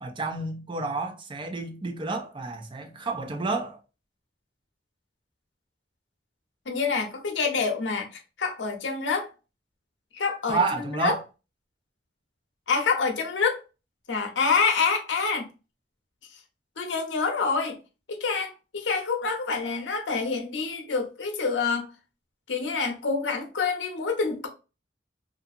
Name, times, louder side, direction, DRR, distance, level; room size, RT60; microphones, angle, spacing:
voice 1, 0.0-3.8 10.5-11.2, right 3 dB, 30° right, 0.5 m, -30 dB
voice 2, 6.7-9.3 10.1-10.6 11.0-11.2 12.7-13.6 14.1-15.5 16.8-17.8 18.1-21.9 22.5-24.5, left 5 dB, 80° left, 0.7 m, -27 dB
2.6 x 2.3 x 2.6 m
head